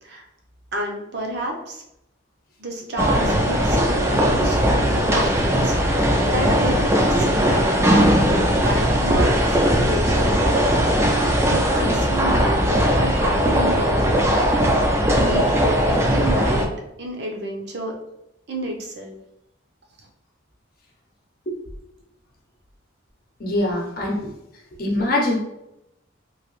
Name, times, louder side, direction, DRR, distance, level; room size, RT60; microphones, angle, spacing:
voice 1, 0.7-1.8 2.6-10.4 11.5-14.2 15.1-17.9 18.5-19.2 20.0-20.1, right 1 dB, 55° right, 1 dB, 0.6 m, -30 dB
sound 1, 3.0-16.7, equal, 15° right, 0.4 m, -19 dB
voice 2, 23.4-24.3 24.8-25.4, left 1 dB, 45° left, -1 dB, 0.7 m, -23 dB
3.1 x 2.9 x 3.0 m, 0.86 s
head